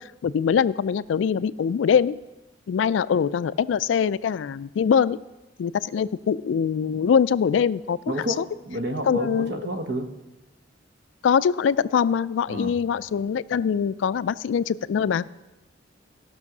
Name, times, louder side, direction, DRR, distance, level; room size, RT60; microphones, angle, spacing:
voice 1, 0.0-2.2 2.7-5.2 5.6-8.4 9.1-9.5 11.2-15.2, left 7 dB, 75° left, 18 dB, 0.3 m, -23 dB
voice 2, 8.1-10.1 12.5-12.7, equal, 60° right, 7 dB, 1.1 m, -30 dB
15.5 x 6.2 x 6.0 m, 1.1 s
head